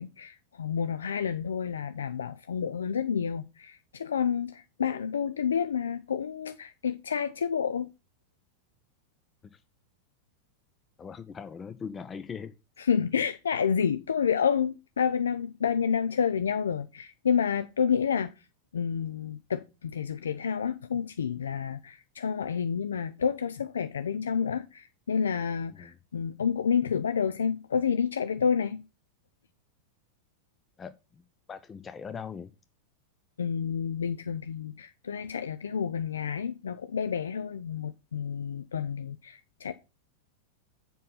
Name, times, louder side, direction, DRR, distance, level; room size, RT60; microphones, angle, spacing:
voice 1, 0.0-7.9 12.8-18.5 18.7-28.8 33.4-39.7, left 7 dB, 70° left, 0.4 m, -29 dB
voice 2, 11.0-12.5 25.8-25.9 30.8-31.2 31.5-32.5, left 6 dB, 20° left, 0.5 m, -40 dB
7.4 x 5.4 x 5.6 m
figure-of-eight pair, 90°, 0 cm